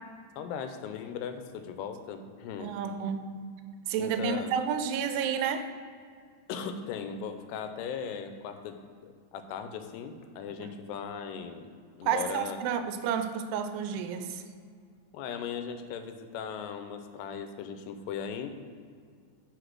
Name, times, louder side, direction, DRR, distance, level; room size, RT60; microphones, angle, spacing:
voice 1, 0.4-2.7 4.0-4.5 6.5-8.8 9.0-11.7 12.0-12.6 15.1-18.5, left 7 dB, 90° left, 8 dB, 2.7 m, -38 dB
voice 2, 2.6-3.5 3.8-5.7 10.6-10.7 12.0-14.4, right 7 dB, 85° right, 8 dB, 2.5 m, -31 dB
5.9 x 5.0 x 5.9 m, 2.1 s
omnidirectional pair, 4.7 m